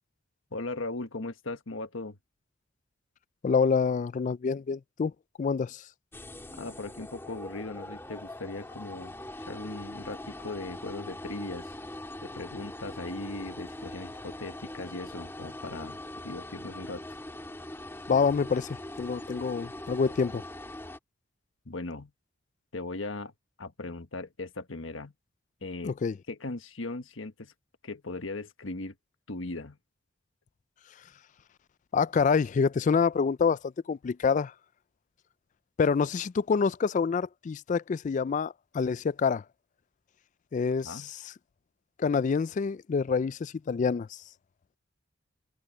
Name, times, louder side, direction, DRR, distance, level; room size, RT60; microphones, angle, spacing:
voice 1, 0.5-2.2 6.6-9.2 9.5-11.8 12.2-17.0 21.6-22.1 22.7-23.3 23.6-25.1 25.6-26.0 26.3-27.5 27.8-28.9 29.3-29.8 40.8-41.1, left 2 dB, 75° left, 1.4 m, -38 dB
voice 2, 3.4-5.1 5.4-5.8 18.1-20.4 25.8-26.1 31.9-34.5 35.8-39.4 40.5-41.2 42.0-44.2, left 5 dB, 40° left, 0.3 m, -27 dB
sound 1, 6.1-21.0, left 1 dB, 10° left, 2.2 m, -42 dB
head